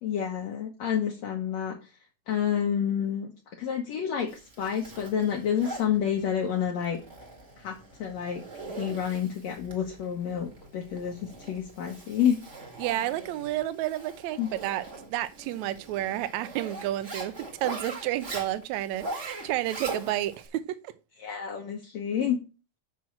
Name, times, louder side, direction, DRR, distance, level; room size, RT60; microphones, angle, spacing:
voice 1, 0.0-1.9 2.3-3.3 3.6-7.0 7.6-8.4 8.8-12.4 14.4-14.5 21.2-22.4, left 8 dB, 65° left, 2.0 m, -29 dB
Zipper (clothing), 4.3-20.5, right 2 dB, 30° right, 1.6 m, -42 dB
voice 2, 12.8-14.8 15.1-17.3 17.6-20.9, right 14 dB, 75° right, 1.8 m, -31 dB
6.2 x 6.1 x 7.1 m
omnidirectional pair, 3.9 m